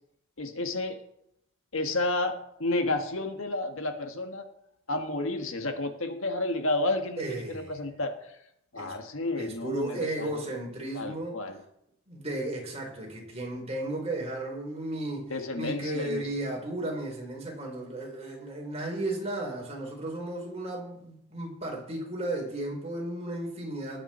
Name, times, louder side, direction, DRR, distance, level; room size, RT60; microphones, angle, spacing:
voice 1, 0.4-1.0 1.7-4.4 4.9-7.2 7.5-8.1 8.7-10.3 11.0-11.6 15.3-16.2, left 2 dB, 70° left, 1.7 m, -31 dB
voice 2, 7.2-7.7 8.8-8.9 9.3-11.4 12.1-24.0, right 1 dB, 30° right, 4.2 m, -34 dB
19.5 x 8.7 x 4.4 m
head